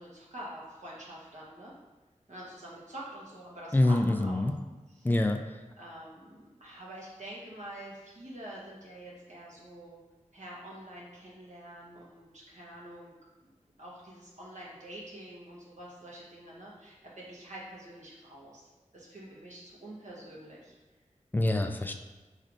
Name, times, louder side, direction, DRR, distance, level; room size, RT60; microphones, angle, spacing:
voice 1, 0.0-1.7 2.3-4.4 4.9-5.1 5.8-10.0 10.3-13.1 13.4-13.5 13.8-20.7, right 1 dB, 65° right, -6 dB, 1.3 m, -46 dB
voice 2, 3.7-4.5 5.0-5.4 21.3-22.0, left 2 dB, 15° left, 5 dB, 0.4 m, -25 dB
5.4 x 3.2 x 2.6 m, 1.2 s
wide cardioid pair, 55°, 13 cm